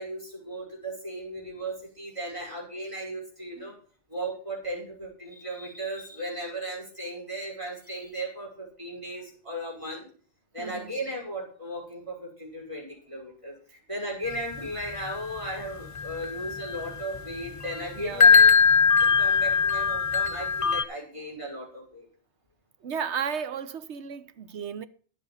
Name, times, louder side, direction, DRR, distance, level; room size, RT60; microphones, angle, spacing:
voice 1, 0.0-3.8 4.1-10.1 10.5-18.5 19.0-22.1, right 1 dB, 25° right, 5.9 m, -36 dB
voice 2, 10.6-10.9 18.0-18.3 22.8-24.9, right 7 dB, 80° right, 1.2 m, -34 dB
sound 1, 14.3-20.8, left 5 dB, 35° left, 0.8 m, -22 dB
11.5 x 8.1 x 5.7 m
omnidirectional pair, 1.1 m